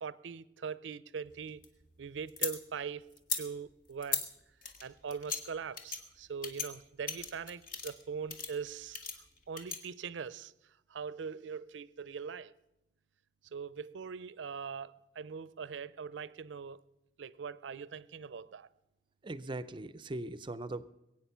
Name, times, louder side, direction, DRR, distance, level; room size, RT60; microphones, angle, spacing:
voice 1, 0.0-1.6 2.0-3.0 3.3-4.3 4.8-9.0 9.5-10.5 10.9-12.5 13.5-16.8 17.2-18.7, right 6 dB, 80° right, 0.5 m, -41 dB
sound 1, 1.2-2.6 3.1-3.4 4.0-4.3 4.6-5.4 5.8-6.0 6.4-6.7 7.1-8.0 8.3-8.5 8.9-9.8, left 5 dB, 50° left, 1.6 m, -37 dB
voice 2, 19.2-20.9, right 2 dB, 25° right, 0.5 m, -40 dB
21.5 x 8.7 x 5.6 m
head